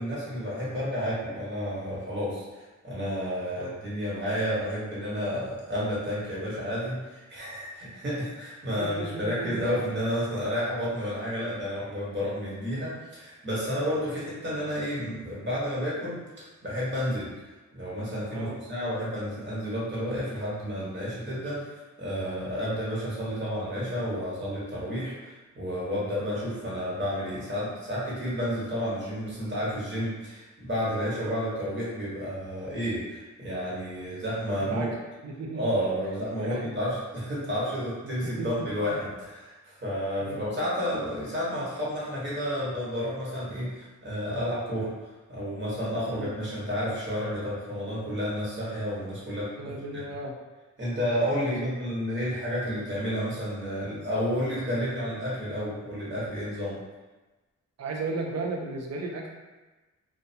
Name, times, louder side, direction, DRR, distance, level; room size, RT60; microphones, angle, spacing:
voice 1, 0.0-16.2 16.6-17.3 17.7-34.9 35.5-44.9 45.3-49.7 50.8-56.8, equal, 35° right, -8 dB, 1.2 m, -31 dB
voice 2, 8.8-9.8 18.3-18.6 34.6-34.9 35.2-35.8 36.4-36.7 38.2-38.7 40.2-40.4 46.1-46.3 49.6-50.4 51.3-51.7 57.8-59.3, right 3 dB, 55° right, 1 dB, 0.5 m, -35 dB
2.3 x 2.2 x 2.7 m, 1.2 s
cardioid pair, 60°, 31 cm